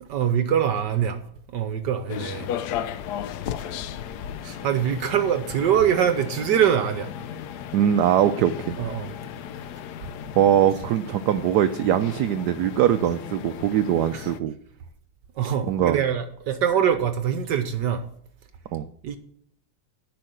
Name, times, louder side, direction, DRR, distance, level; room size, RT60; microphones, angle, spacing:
voice 1, 0.0-1.2 1.5-2.5 4.4-7.1 8.8-9.1 14.1-14.3 15.4-18.0 19.0-19.2, right 9 dB, 65° right, 1.2 m, -23 dB
sound 1, 2.1-14.4, left 9 dB, 75° left, 0.9 m, -35 dB
voice 2, 7.7-8.5 10.4-14.6 15.7-16.0 18.7-18.9, right 10 dB, 85° right, 0.9 m, -21 dB
10.5 x 5.6 x 7.7 m
omnidirectional pair, 2.3 m